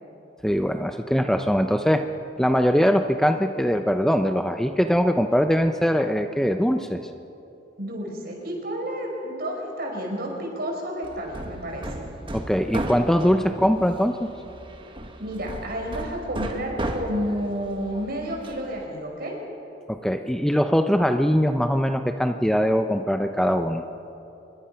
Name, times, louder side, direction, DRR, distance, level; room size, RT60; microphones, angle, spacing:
voice 1, 0.4-2.0 2.4-7.0 12.3-14.3 19.9-23.8, equal, 5° left, 7 dB, 0.6 m, -22 dB
voice 2, 7.8-12.1 15.2-19.4, equal, 55° right, 0 dB, 5.3 m, -31 dB
Hammer, 11.0-18.9, right 1 dB, 30° right, 1.5 m, -35 dB
25.5 x 22.5 x 5.8 m, 2.9 s
head